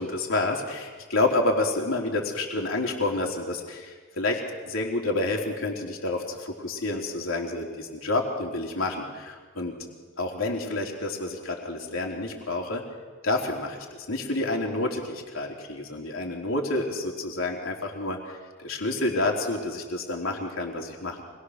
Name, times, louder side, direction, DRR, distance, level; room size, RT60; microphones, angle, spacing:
voice 1, 0.0-4.4 4.7-9.7 10.2-12.8 13.2-21.2, left 2 dB, 75° left, 0 dB, 3.6 m, -29 dB
25.5 x 21.5 x 6.6 m, 1.5 s
head